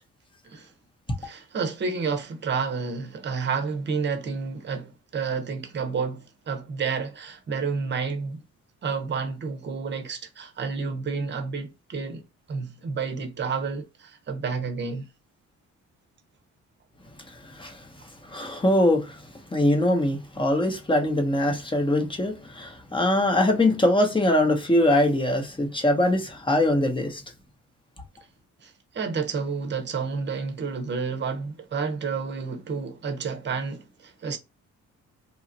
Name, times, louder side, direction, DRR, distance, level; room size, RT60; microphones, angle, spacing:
voice 1, 1.2-8.4 8.8-12.2 12.5-15.1 28.6-34.4, right 5 dB, 35° right, 0.8 m, -30 dB
voice 2, 18.3-19.2 19.5-27.2, left 1 dB, 15° left, 0.8 m, -22 dB
2.9 x 2.4 x 2.6 m
cardioid pair, 90°, 30 cm